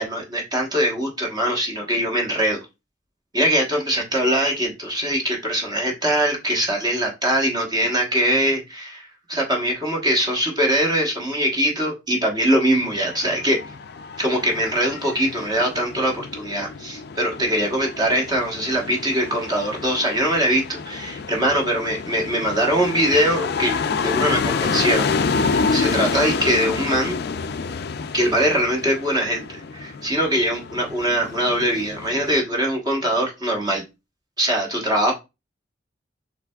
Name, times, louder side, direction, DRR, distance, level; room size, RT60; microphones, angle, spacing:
voice 1, 0.0-2.6 3.3-13.6 14.2-25.1 25.4-27.2 28.1-33.8 34.4-35.1, right 1 dB, 25° right, 0 dB, 1.2 m, -22 dB
sound 1, 12.8-32.4, left 5 dB, 60° left, 0.4 m, -28 dB
5.8 x 3.3 x 2.3 m, 0.25 s
head